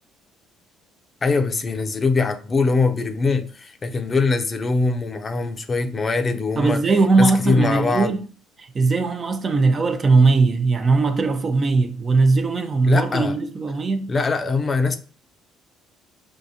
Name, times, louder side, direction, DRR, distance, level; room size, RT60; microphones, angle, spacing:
voice 1, 1.2-6.8 7.2-8.1 12.8-13.3 14.1-15.0, left 3 dB, 35° left, 0.6 m, -22 dB
voice 2, 6.6-8.2 8.6-14.1, right 3 dB, 40° right, 0.7 m, -19 dB
5.4 x 2.5 x 2.7 m
hypercardioid pair, 60°, 0 cm